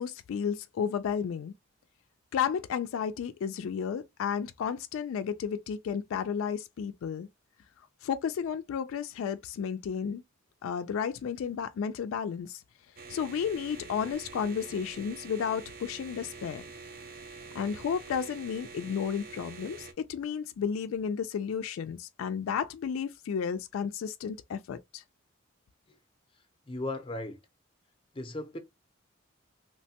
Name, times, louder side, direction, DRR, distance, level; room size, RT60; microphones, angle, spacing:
voice 1, 0.0-1.5 2.3-7.3 8.0-10.2 10.6-12.6 13.1-16.6 17.5-25.0, left 7 dB, 85° left, 0.3 m, -32 dB
sound 1, 13.0-19.9, right 4 dB, 45° right, 0.5 m, -46 dB
voice 2, 26.7-27.4 28.1-28.6, left 2 dB, 25° left, 0.6 m, -36 dB
3.1 x 2.1 x 2.7 m
head